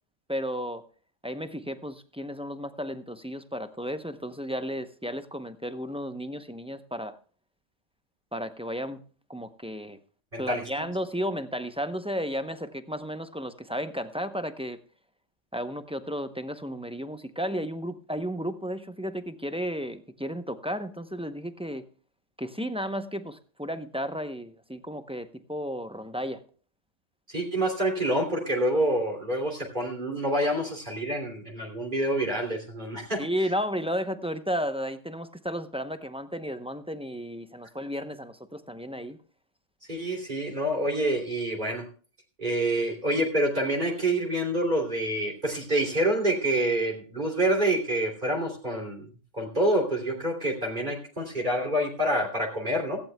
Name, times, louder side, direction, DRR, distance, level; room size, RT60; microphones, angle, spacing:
voice 1, 0.3-0.8 1.2-7.2 8.3-9.0 9.3-10.0 10.4-14.8 15.5-21.8 22.4-26.4 33.2-39.2, equal, 5° right, 9 dB, 0.6 m, -33 dB
voice 2, 10.3-10.8 27.3-33.2 39.9-41.8 42.4-49.1 49.3-53.0, right 1 dB, 40° right, 1 dB, 3.2 m, -27 dB
17.0 x 15.0 x 2.3 m, 0.40 s
omnidirectional pair, 1.2 m